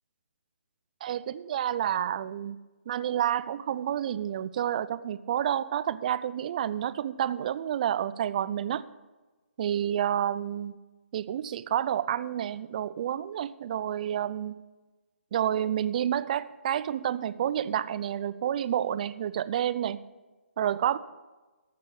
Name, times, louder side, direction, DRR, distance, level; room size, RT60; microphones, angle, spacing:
voice 1, 1.0-2.6 2.9-8.8 9.6-10.7 11.1-14.6 15.3-20.0 20.6-21.0, right 10 dB, 35° right, 16 dB, 0.5 m, -29 dB
15.0 x 6.7 x 7.9 m, 1.2 s
figure-of-eight pair, 150°, 7 cm